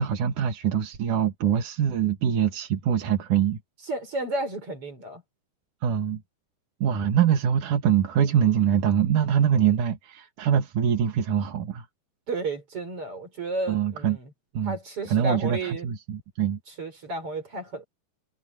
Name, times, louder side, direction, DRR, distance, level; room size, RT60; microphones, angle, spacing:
voice 1, 0.0-3.6 5.8-6.2 6.8-11.9 13.7-14.2 14.5-14.8 15.0-16.6, right 8 dB, 55° right, 3.0 m, -24 dB
voice 2, 3.8-5.2 12.3-14.3 14.6-15.9 16.7-17.8, right 2 dB, 35° right, 5.6 m, -32 dB
omnidirectional pair, 4.9 m